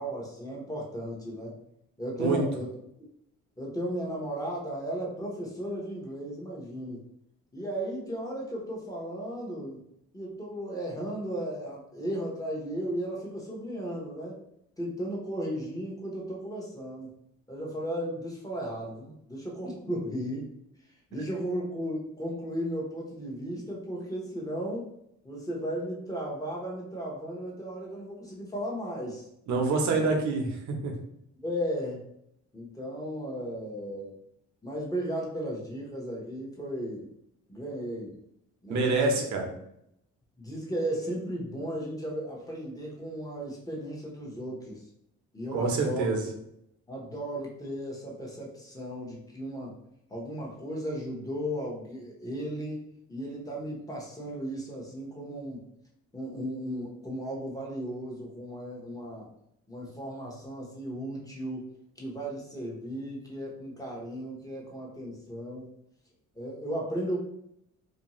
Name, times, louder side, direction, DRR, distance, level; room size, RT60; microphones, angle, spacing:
voice 1, 0.0-1.6 2.0-2.7 3.6-7.1 7.5-9.8 10.1-14.4 14.8-17.1 17.5-20.5 21.1-24.9 25.2-29.3 29.9-30.0 31.4-32.1 32.5-34.1 34.6-37.1 37.5-38.2 38.6-39.2 40.4-44.8 45.3-46.1 46.9-49.8 50.1-55.6 56.1-59.3 59.7-61.7 62.0-65.7 66.3-67.2, equal, 10° left, -3 dB, 0.8 m, -35 dB
voice 2, 29.5-30.9 38.7-39.5 45.5-46.2, right 3 dB, 70° right, 2 dB, 0.7 m, -26 dB
2.6 x 2.2 x 2.9 m, 0.77 s
cardioid pair, 90°, 30 cm